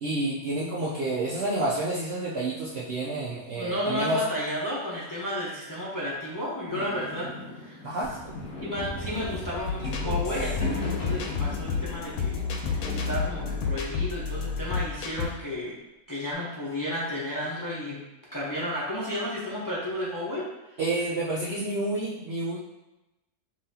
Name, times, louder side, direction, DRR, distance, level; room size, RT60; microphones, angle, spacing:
voice 1, 0.0-4.2 7.8-8.1 20.8-22.6, right 2 dB, 60° right, -5 dB, 0.7 m, -29 dB
voice 2, 3.6-7.3 7.5-7.8 8.6-15.7 16.1-18.0 18.3-20.4, left 1 dB, 20° left, -8 dB, 0.7 m, -32 dB
Fireworks, 6.7-13.8, left 2 dB, 65° left, 1.6 m, -38 dB
sound 1, 8.0-15.2 16.3-16.4, right 3 dB, 80° right, 1.1 m, -45 dB
sound 2, 9.7-15.3, left 5 dB, 85° left, 1.1 m, -30 dB
5.4 x 2.8 x 2.8 m, 1.0 s
omnidirectional pair, 1.5 m